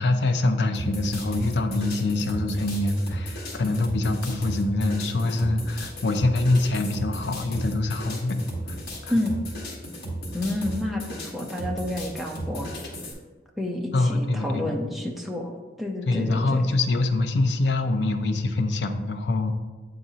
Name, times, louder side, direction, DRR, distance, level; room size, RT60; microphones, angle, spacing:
voice 1, 0.0-8.4 8.7-9.1 13.9-14.8 16.1-19.5, left 2 dB, 70° left, 7 dB, 0.5 m, -24 dB
sound 1, 0.7-13.1, right 1 dB, 55° left, 1.5 m, -35 dB
voice 2, 10.3-12.7 13.6-15.5 15.8-16.6, left 1 dB, ahead, 0 dB, 0.6 m, -29 dB
8.5 x 3.9 x 2.8 m, 1.3 s
head